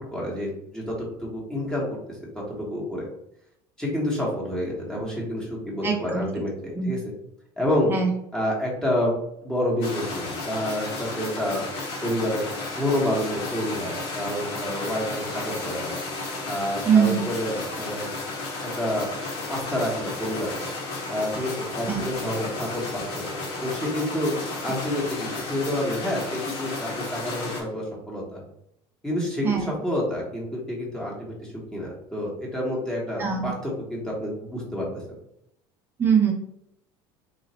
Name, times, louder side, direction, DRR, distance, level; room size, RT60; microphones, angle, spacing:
voice 1, 0.1-2.0 2.6-3.1 3.8-7.1 7.6-7.9 8.3-9.1 9.4-11.7 12.0-12.5 12.7-16.0 16.5-18.1 18.6-19.1 19.5-20.6 21.1-23.3 23.6-24.3 24.6-28.4 29.0-34.9, left 1 dB, 5° left, -4 dB, 1.4 m, -28 dB
voice 2, 5.8-6.2 6.8-6.9 7.9-8.1 16.9-17.2 21.9-22.0 29.4-29.7 33.2-33.5 36.0-36.3, right 7 dB, 20° right, 0 dB, 0.7 m, -21 dB
sound 1, 9.8-27.6, left 3 dB, 70° left, 1.6 m, -33 dB
3.9 x 2.8 x 4.2 m, 0.77 s
cardioid pair, 145°, 11 cm